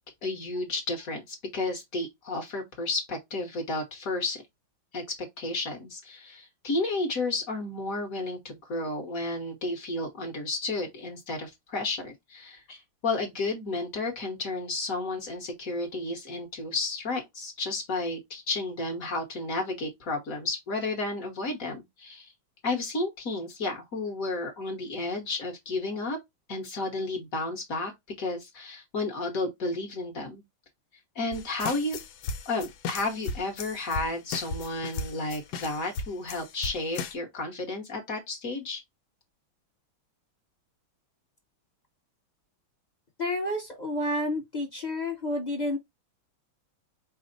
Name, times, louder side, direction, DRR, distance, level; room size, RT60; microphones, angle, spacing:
voice 1, 0.2-4.4 4.9-5.0 5.4-22.3 22.6-26.2 26.5-27.9 28.2-30.4 31.1-32.0 32.4-38.8, left 2 dB, 50° left, 1.4 m, -32 dB
sound 1, 31.3-37.1, left 4 dB, 80° left, 1.5 m, -36 dB
voice 2, 43.2-45.8, left 1 dB, 30° left, 0.8 m, -30 dB
5.1 x 2.0 x 3.9 m
omnidirectional pair, 2.2 m